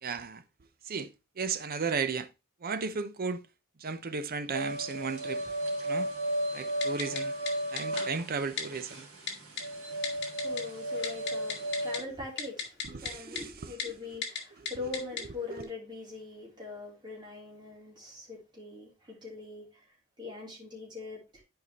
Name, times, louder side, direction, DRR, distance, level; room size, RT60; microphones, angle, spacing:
voice 1, 0.0-0.4 0.8-1.1 1.4-2.3 2.6-3.4 3.8-5.6 5.8-6.1 6.5-7.3 7.7-9.1 12.9-13.7 15.6-15.7, right 5 dB, 45° right, 0.6 m, -34 dB
sound 1, 4.5-12.0, right 1 dB, 90° right, 2.9 m, -34 dB
Typing, 6.8-7.2 7.5-7.6 7.8-8.0 8.6-8.7 9.3-9.6 10.0-10.6 10.9-12.0 12.4-13.1 13.4-13.5 13.8-13.9 14.2-14.4 14.7-15.2 15.6-15.7, left 7 dB, 55° left, 1.7 m, -34 dB
voice 2, 9.9-19.8 20.2-21.4, left 3 dB, 20° right, 3.2 m, -42 dB
11.0 x 4.8 x 2.9 m
head